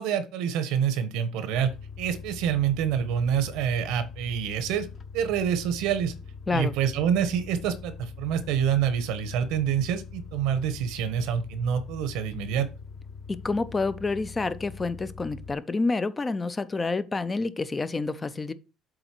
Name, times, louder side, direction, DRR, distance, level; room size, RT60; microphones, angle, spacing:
voice 1, 0.0-1.7 2.0-4.9 5.1-6.1 6.5-12.7, right 8 dB, 90° right, 1.3 m, -27 dB
sound 1, 1.6-15.5, left 5 dB, 35° left, 0.9 m, -43 dB
voice 2, 13.3-18.5, left 3 dB, 15° left, 0.5 m, -28 dB
7.8 x 4.0 x 6.1 m
cardioid pair, 160°, 0 cm